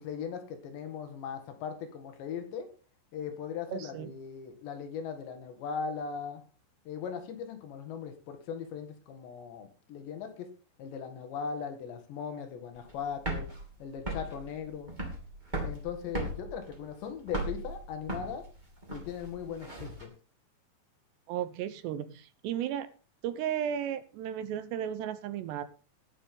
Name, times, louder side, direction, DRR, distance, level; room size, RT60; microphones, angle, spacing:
voice 1, 0.0-2.7 3.1-6.4 6.9-10.5 10.8-13.5 13.8-14.9 15.6-18.4 18.9-20.1, left 6 dB, 75° left, 6 dB, 4.0 m, -39 dB
voice 2, 3.7-4.1 21.3-22.9 23.2-25.6, right 10 dB, 75° right, 13 dB, 2.8 m, -34 dB
sound 1, 12.8-20.0, right 1 dB, 15° right, 1.9 m, -37 dB
19.0 x 7.5 x 3.8 m, 0.37 s
omnidirectional pair, 5.2 m